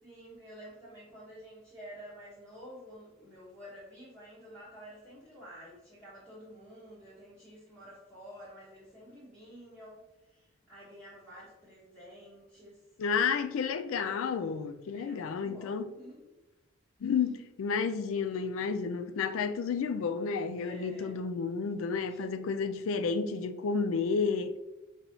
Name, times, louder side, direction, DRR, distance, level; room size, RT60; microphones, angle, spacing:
voice 1, 0.0-12.9 14.9-16.2 20.6-21.2 22.1-22.2, equal, 5° left, 1.1 m, -50 dB
voice 2, 13.0-15.9 17.0-24.5, left 5 dB, 75° left, 0.3 m, -31 dB
5.3 x 3.0 x 2.8 m
head